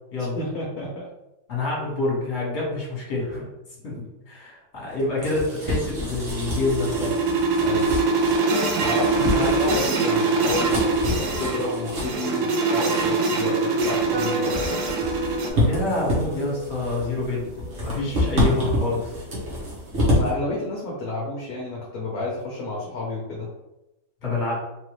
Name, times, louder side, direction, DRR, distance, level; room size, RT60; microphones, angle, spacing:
voice 1, 0.4-1.1 7.6-8.0 8.8-14.7 20.2-23.5, left 2 dB, 60° left, -4 dB, 1.2 m, -30 dB
voice 2, 1.5-3.5 3.8-7.1 9.2-9.5 15.5-17.4 17.8-19.1 24.2-24.6, left 2 dB, 35° left, -6 dB, 1.7 m, -27 dB
sound 1, 4.9-20.3, left 1 dB, 45° right, 1.3 m, -28 dB
sound 2, 6.1-15.5, right 4 dB, 90° right, 1.4 m, -23 dB
sound 3, 14.1-19.9, equal, 75° right, 1.4 m, -36 dB
4.0 x 2.7 x 3.1 m, 0.94 s
omnidirectional pair, 2.0 m